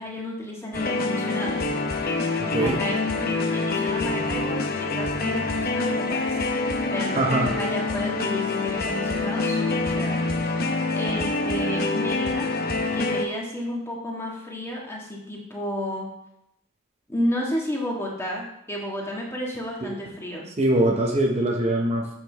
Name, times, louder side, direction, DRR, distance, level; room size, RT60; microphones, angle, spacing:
voice 1, 0.0-1.6 2.6-10.5 10.9-12.5 12.9-16.1 17.1-20.4, left 1 dB, 15° left, -2 dB, 1.6 m, -32 dB
sound 1, 0.7-13.3, left 3 dB, 50° left, 0.8 m, -26 dB
voice 2, 2.4-2.8 7.2-7.6 19.8-19.9 20.6-22.1, right 1 dB, 30° right, 0 dB, 0.8 m, -22 dB
7.8 x 6.8 x 3.4 m, 0.81 s
head